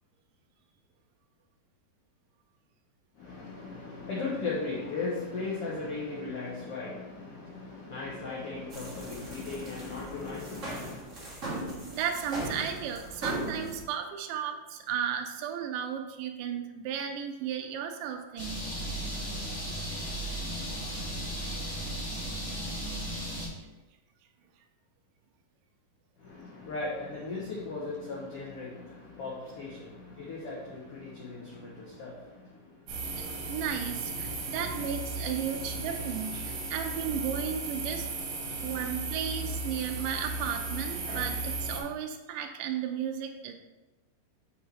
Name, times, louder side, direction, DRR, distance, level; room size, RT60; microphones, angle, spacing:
voice 1, 3.1-11.0 26.2-33.6 34.4-34.5, left 3 dB, 85° left, -5 dB, 1.3 m, -37 dB
sound 1, 8.7-13.8, right 1 dB, 45° right, 0.9 m, -38 dB
voice 2, 11.9-18.6 33.2-38.1 38.6-43.6, right 8 dB, 80° right, 4 dB, 2.0 m, -34 dB
sound 2, 18.4-23.5, right 1 dB, 45° left, 2.1 m, -35 dB
sound 3, 32.9-41.8, right 3 dB, 60° right, 2.3 m, -35 dB
7.1 x 4.9 x 3.4 m, 1.1 s
omnidirectional pair, 4.2 m